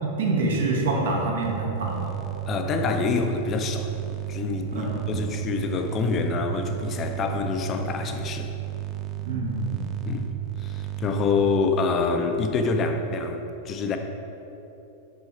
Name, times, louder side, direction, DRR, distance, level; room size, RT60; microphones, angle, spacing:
voice 1, 0.0-2.2 4.7-5.2 9.2-9.9, right 3 dB, 60° right, -1 dB, 1.2 m, -26 dB
sound 1, 1.4-11.6, right 14 dB, 35° right, 0.4 m, -33 dB
voice 2, 2.5-3.9 4.3-8.5 10.1-10.3 10.6-14.0, left 4 dB, 30° left, 6 dB, 0.6 m, -26 dB
6.0 x 5.5 x 4.5 m, 3.0 s
figure-of-eight pair, 90°, 0 cm